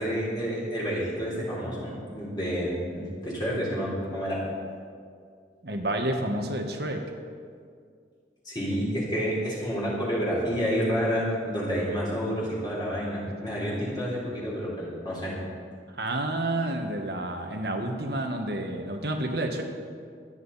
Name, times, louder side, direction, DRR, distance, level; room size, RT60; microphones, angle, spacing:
voice 1, 0.0-4.4 8.5-15.3, equal, 25° left, -6 dB, 3.6 m, -29 dB
voice 2, 5.6-7.0 15.9-19.6, right 1 dB, 65° right, 4 dB, 1.5 m, -29 dB
24.0 x 9.2 x 4.2 m, 2.2 s
head